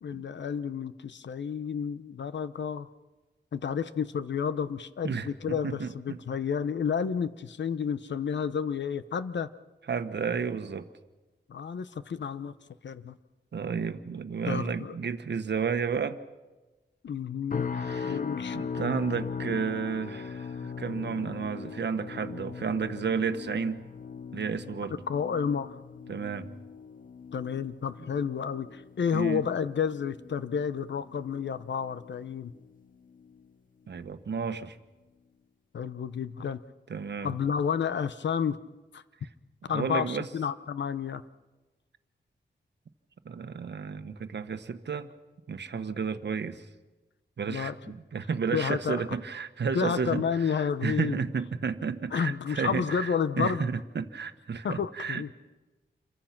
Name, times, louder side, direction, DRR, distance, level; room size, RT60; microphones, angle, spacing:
voice 1, 0.0-2.9 3.5-9.5 11.5-12.5 12.8-13.1 14.5-14.9 17.0-17.7 18.1-18.6 25.1-25.8 27.3-32.5 35.7-36.6 37.2-38.6 38.9-39.0 39.7-41.2 47.5-47.7 48.5-49.1 49.7-51.2 52.1-53.6 54.6-55.3, left 7 dB, 90° left, 13 dB, 0.8 m, -30 dB
voice 2, 5.0-6.2 9.9-10.9 13.5-16.2 17.7-18.2 18.5-23.8 24.3-25.0 26.1-26.5 29.1-29.4 33.9-34.8 36.9-37.3 39.7-40.3 43.2-45.1 45.5-46.7 47.4-55.3, right 6 dB, 75° right, 9 dB, 1.3 m, -32 dB
sound 1, 17.5-32.7 33.1-33.5 33.9-34.1, left 6 dB, 50° left, 0.7 m, -39 dB
28.0 x 23.5 x 6.0 m, 1.1 s
wide cardioid pair, 110°, 18 cm